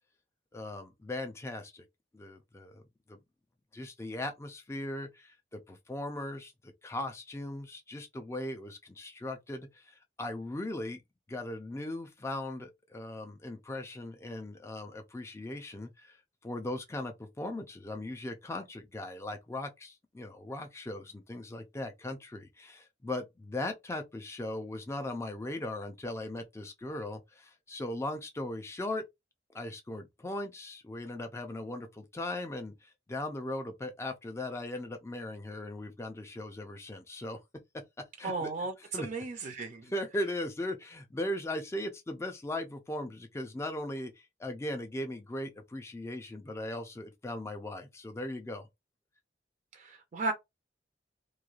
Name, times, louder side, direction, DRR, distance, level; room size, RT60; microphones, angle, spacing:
voice 1, 0.5-1.8 2.1-2.8 3.1-3.2 3.7-11.0 11.3-16.2 16.4-29.0 29.5-37.4 38.2-38.5 38.9-39.1 39.9-48.7, left 1 dB, 15° left, 0.4 m, -38 dB
voice 2, 38.2-39.9 49.7-50.3, right 3 dB, 45° right, 0.4 m, -35 dB
3.1 x 2.2 x 2.3 m
head